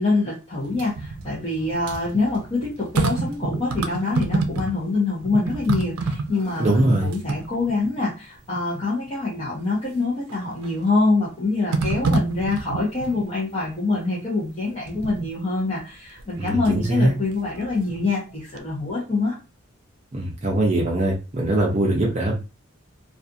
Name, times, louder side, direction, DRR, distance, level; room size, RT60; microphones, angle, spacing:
voice 1, 0.0-19.3, left 3 dB, 30° left, -7 dB, 0.7 m, -25 dB
sound 1, 0.6-4.9 5.2-8.0 8.5-8.6 10.3-10.8 11.7-13.2 14.9-15.3 16.2-16.9 17.3-18.3 18.6-18.7, right 3 dB, 90° right, 0.4 m, -28 dB
voice 2, 6.6-7.1 16.4-17.2 20.1-22.3, right 1 dB, 30° right, -2 dB, 0.5 m, -21 dB
2.4 x 2.4 x 2.6 m, 0.31 s
head